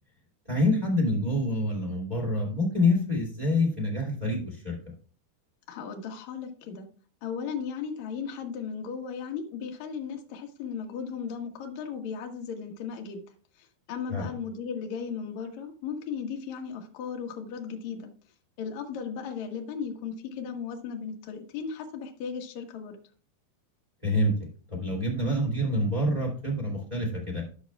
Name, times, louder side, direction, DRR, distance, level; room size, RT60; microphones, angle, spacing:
voice 1, 0.5-4.8 14.1-14.3 24.0-24.3 24.7-27.4, left 1 dB, 20° right, -1 dB, 1.0 m, -26 dB
voice 2, 5.7-6.9 7.2-13.2 13.6-18.1 18.6-23.0, left 6 dB, 70° left, 3 dB, 1.8 m, -36 dB
13.0 x 6.2 x 2.3 m, 0.40 s
omnidirectional pair, 5.0 m